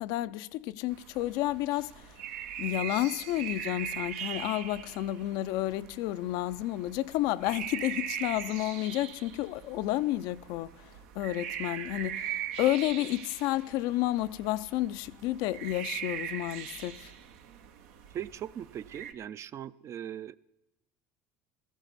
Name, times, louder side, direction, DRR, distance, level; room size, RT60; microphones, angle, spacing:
voice 1, 0.0-2.1 2.6-17.1, left 15 dB, 70° left, 0.4 m, -31 dB
sound 1, 0.9-19.1, right 9 dB, 85° right, 0.9 m, -41 dB
voice 2, 18.1-20.4, right 10 dB, 40° right, 0.4 m, -39 dB
15.0 x 14.5 x 4.1 m
supercardioid pair, 100°, 7 cm